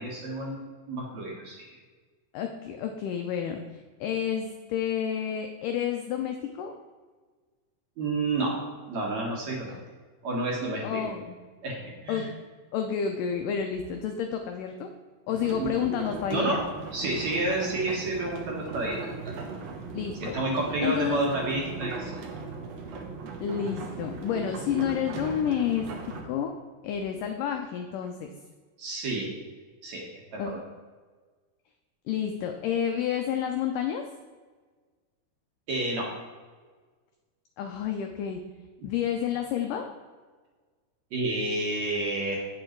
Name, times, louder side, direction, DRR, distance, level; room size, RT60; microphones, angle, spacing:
voice 1, 0.0-1.7 8.0-8.6 8.9-9.8 10.2-11.0 11.6-12.3 15.6-15.7 16.3-16.6 16.9-19.4 20.2-22.1 28.8-29.3 29.8-30.1 30.3-30.4 35.7-36.1 41.1-42.4, right 2 dB, 55° right, -2 dB, 2.3 m, -30 dB
voice 2, 2.3-6.7 10.8-11.4 12.1-12.3 12.7-14.9 15.3-16.6 19.9-20.4 20.8-21.2 23.4-26.5 26.8-28.3 30.4-30.6 32.1-34.0 37.6-38.4 38.8-39.9, left 8 dB, 85° left, 4 dB, 1.9 m, -30 dB
sound 1, 15.3-26.2, right 4 dB, 80° right, 1.4 m, -38 dB
8.8 x 7.6 x 4.5 m, 1.4 s
omnidirectional pair, 4.5 m